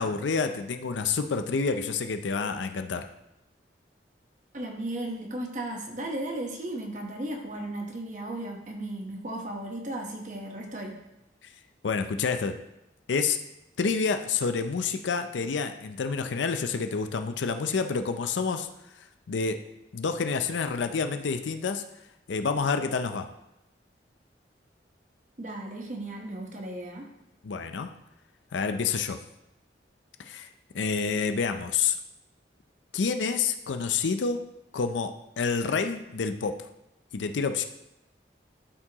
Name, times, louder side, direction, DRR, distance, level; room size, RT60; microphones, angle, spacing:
voice 1, 0.0-3.1 11.8-12.6 13.1-13.4 13.8-18.7 19.3-19.6 19.9-21.8 22.3-23.3 27.4-27.9 28.5-29.2 30.2-30.5 30.7-32.0 32.9-34.4 34.7-36.6 37.1-37.6, left 5 dB, 90° left, 8 dB, 0.5 m, -28 dB
voice 2, 4.5-10.9 25.4-27.1, right 1 dB, 45° right, 1 dB, 1.1 m, -35 dB
12.5 x 4.5 x 2.9 m, 0.88 s
head